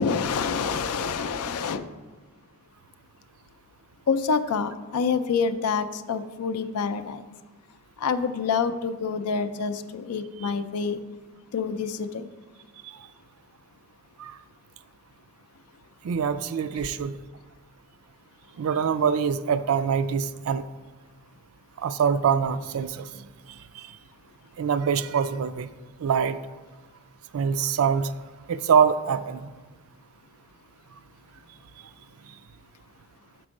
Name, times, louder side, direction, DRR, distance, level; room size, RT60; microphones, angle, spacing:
voice 1, 0.0-1.8 4.1-7.2 8.0-11.0 11.5-12.2, left 5 dB, 85° left, 11 dB, 0.4 m, -27 dB
voice 2, 16.0-17.2 18.6-20.6 21.8-23.9 24.6-25.7 26.0-26.4 27.3-28.1 28.5-29.5, right 7 dB, 65° right, 14 dB, 0.3 m, -25 dB
6.1 x 4.4 x 6.4 m, 1.3 s
head